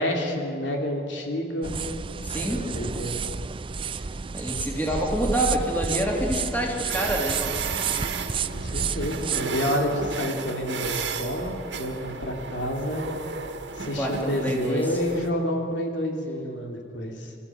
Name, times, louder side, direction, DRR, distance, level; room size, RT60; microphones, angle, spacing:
voice 1, 0.0-1.7 2.3-3.2 8.5-13.0 13.8-17.3, equal, 80° left, 1 dB, 3.3 m, -29 dB
sound 1, 1.6-9.5, right 5 dB, 30° right, 0.5 m, -31 dB
voice 2, 2.2-2.7 3.8-4.0 4.3-7.6 13.9-15.0, equal, 10° left, -1 dB, 3.1 m, -27 dB
sound 2, 6.9-15.3, right 5 dB, 70° right, 1.8 m, -33 dB
25.5 x 15.0 x 8.6 m, 2.5 s
head